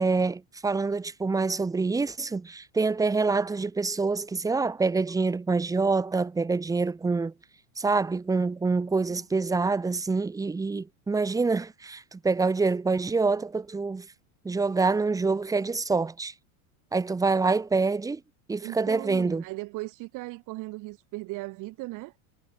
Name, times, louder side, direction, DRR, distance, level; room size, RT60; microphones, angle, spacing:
voice 1, 0.0-7.3 7.8-14.1 14.4-16.3 16.9-18.2 18.5-19.4, right 4 dB, 10° right, 1.0 m, -26 dB
voice 2, 18.6-22.1, right 21 dB, 45° right, 2.3 m, -37 dB
supercardioid pair, 145°, 42 cm